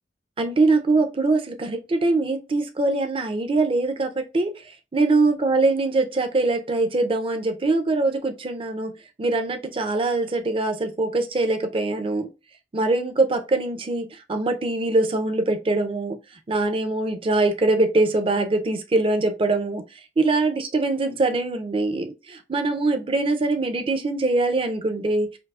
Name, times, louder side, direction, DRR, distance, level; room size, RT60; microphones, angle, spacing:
voice 1, 0.4-4.5 4.9-8.9 9.2-12.3 12.7-16.2 16.5-19.8 20.2-25.3, right 2 dB, 30° right, 0.5 m, -23 dB
4.5 x 2.0 x 2.3 m
head